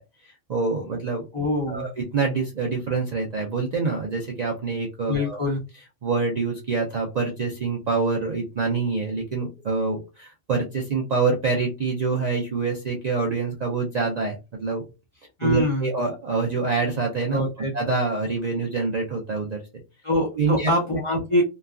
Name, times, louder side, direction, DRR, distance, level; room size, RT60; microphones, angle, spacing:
voice 1, 0.2-1.3 1.7-5.4 6.0-14.8 15.4-17.4 17.7-19.8 20.3-20.7, right 4 dB, 60° right, 0 dB, 0.4 m, -26 dB
voice 2, 1.3-1.9 5.1-5.6 15.4-15.9 17.3-17.7 20.0-21.4, left 1 dB, 40° left, -3 dB, 0.4 m, -24 dB
3.1 x 2.2 x 2.4 m, 0.28 s
omnidirectional pair, 1.3 m